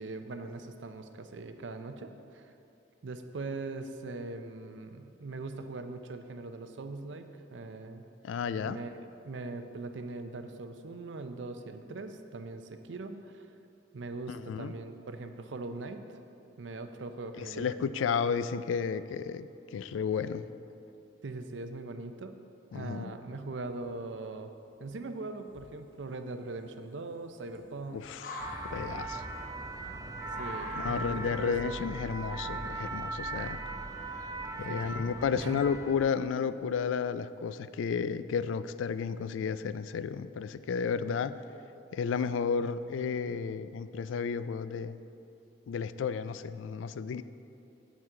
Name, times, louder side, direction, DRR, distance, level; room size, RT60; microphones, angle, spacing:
voice 1, 0.0-2.5 3.0-8.0 8.7-8.9 9.3-13.4 13.9-16.0 16.6-18.1 21.2-22.3 22.7-24.5 24.8-28.1 30.4-31.7 34.7-35.7, right 3 dB, 75° right, 8 dB, 0.5 m, -41 dB
voice 2, 8.2-8.8 14.3-14.7 17.4-20.5 22.7-23.1 27.9-28.4 28.6-29.2 30.7-33.6 34.6-41.4 41.9-45.0 45.7-47.2, left 6 dB, 85° left, 14 dB, 0.3 m, -32 dB
sound 1, 23.6-24.2 24.9-25.0 25.5-33.5, left 2 dB, 45° left, 0.8 m, -47 dB
sound 2, 28.4-36.1, right 3 dB, 20° right, 0.4 m, -39 dB
9.0 x 8.2 x 3.7 m, 2.7 s
head